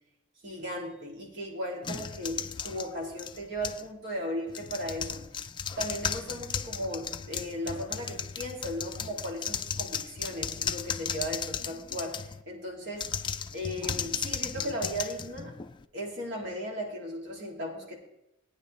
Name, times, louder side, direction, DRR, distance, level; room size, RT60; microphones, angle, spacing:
voice 1, 0.4-5.3 5.8-13.1 13.5-15.5 15.9-18.0, equal, 65° right, -1 dB, 2.5 m, -36 dB
sound 1, 1.8-3.9 4.5-12.4 12.9-15.8, left 7 dB, 25° left, 0.4 m, -35 dB
17.5 x 9.5 x 3.2 m, 0.87 s
head